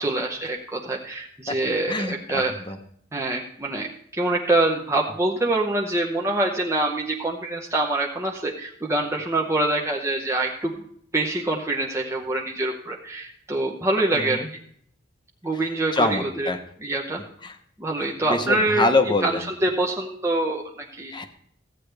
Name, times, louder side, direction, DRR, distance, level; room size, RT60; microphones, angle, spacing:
voice 1, 0.0-2.5 3.1-10.7 11.1-14.4 15.4-16.5 16.8-17.2 17.8-18.9 19.2-21.1, right 2 dB, 15° right, -1 dB, 0.8 m, -25 dB
voice 2, 1.9-2.8 14.1-14.5 15.5-16.6 17.4-17.6 18.0-19.5 21.1-21.3, left 2 dB, 25° left, 7 dB, 0.9 m, -25 dB
14.5 x 9.2 x 3.4 m, 0.66 s
head